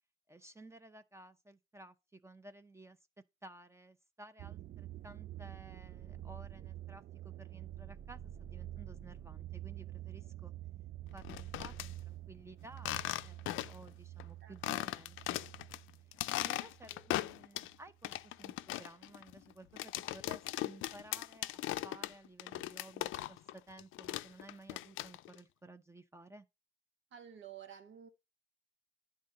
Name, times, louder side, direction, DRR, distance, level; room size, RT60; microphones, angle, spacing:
voice 1, 0.3-3.0 3.4-10.5 11.1-15.5 16.1-26.5, right 2 dB, 15° right, 0.7 m, -55 dB
sound 1, 4.4-17.4 17.7-18.3, right 13 dB, 50° right, 0.4 m, -48 dB
sound 2, 11.2-11.9 12.8-13.9 14.2-14.3 14.6-15.8 16.1-17.7 18.0-23.5 23.8-25.4, left 16 dB, 85° left, 0.4 m, -38 dB
voice 2, 14.4-14.8 16.9-17.0 27.1-28.1, right 9 dB, 70° right, 1.5 m, -52 dB
10.0 x 3.8 x 5.4 m
cardioid pair, 90°, 20 cm